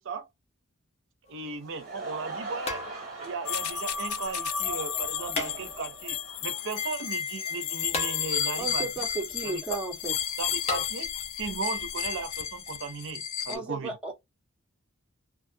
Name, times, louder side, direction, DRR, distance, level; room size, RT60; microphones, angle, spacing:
sound 1, 1.3-1.4 2.6-3.4 5.3-6.1 7.9-8.7 10.7-10.8, left 4 dB, 30° left, 0.7 m, -34 dB
voice 1, 1.3-2.8 3.2-8.9 9.4-9.6 10.4-11.1 11.4-14.0, right 4 dB, 65° right, 0.6 m, -36 dB
Laughter / Crowd, 1.4-7.7, right 3 dB, 35° right, 1.1 m, -42 dB
sound 2, 3.5-13.6, left 8 dB, 80° left, 0.3 m, -32 dB
voice 2, 8.6-10.1 13.5-14.1, right 3 dB, 5° right, 1.1 m, -34 dB
2.5 x 2.4 x 2.6 m
head